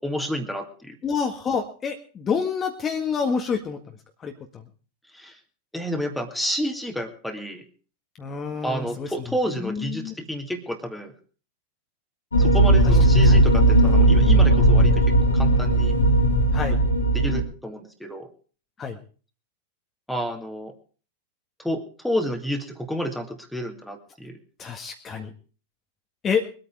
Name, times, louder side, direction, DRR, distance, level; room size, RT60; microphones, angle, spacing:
voice 1, 0.0-1.0 5.1-5.4 5.7-7.6 8.6-11.1 12.4-16.0 17.1-18.3 20.1-20.7 21.6-24.4, equal, ahead, 5 dB, 2.4 m, -30 dB
voice 2, 1.0-3.8 4.2-4.3 8.2-9.1 9.6-10.1 13.3-13.4 16.5-16.8 18.8-19.0 24.6-25.3 26.2-26.4, left 6 dB, 25° left, 3 dB, 1.8 m, -27 dB
sound 1, 12.3-17.4, right 1 dB, 75° left, 3.2 m, -17 dB
23.0 x 9.0 x 4.8 m, 0.39 s
figure-of-eight pair, 90°, 0 cm